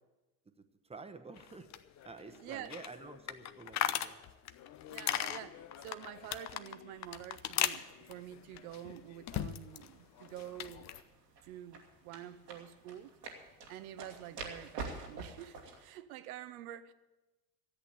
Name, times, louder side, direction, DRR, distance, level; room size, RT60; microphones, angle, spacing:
voice 1, 0.8-1.7 2.0-4.2, right 4 dB, 15° right, 1.1 m, -49 dB
sound 1, 1.4-9.9 10.2-11.0, left 11 dB, 35° left, 0.7 m, -39 dB
voice 2, 2.3-2.7 4.9-10.9 11.4-13.1 13.4-16.9, right 12 dB, 65° right, 1.0 m, -48 dB
sound 2, 6.9-15.9, right 3 dB, 90° right, 2.3 m, -49 dB
13.5 x 8.4 x 8.5 m
hypercardioid pair, 80°, 47 cm